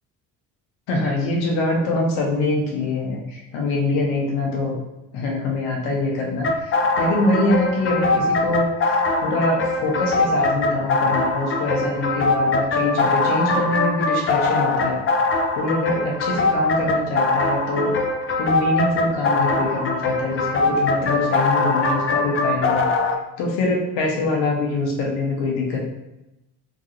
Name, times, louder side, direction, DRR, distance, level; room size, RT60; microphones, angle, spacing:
voice 1, 0.9-4.8 5.1-15.0 15.5-18.0 18.4-22.9 23.4-25.8, left 2 dB, 90° left, -1 dB, 0.9 m, -24 dB
sound 1, 6.4-23.1, left 3 dB, 35° left, 0.4 m, -22 dB
2.9 x 2.5 x 2.8 m, 0.93 s
cardioid pair, 90°, 40 cm